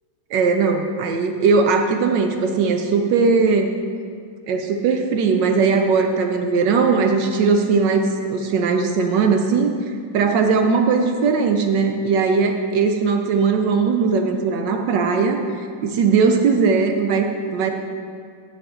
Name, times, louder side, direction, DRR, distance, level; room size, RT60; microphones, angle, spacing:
voice 1, 0.3-3.7 4.5-9.7 10.1-15.4 15.8-17.7, right 5 dB, 70° right, 5 dB, 1.1 m, -19 dB
8.1 x 7.8 x 3.6 m, 2.1 s
omnidirectional pair, 2.3 m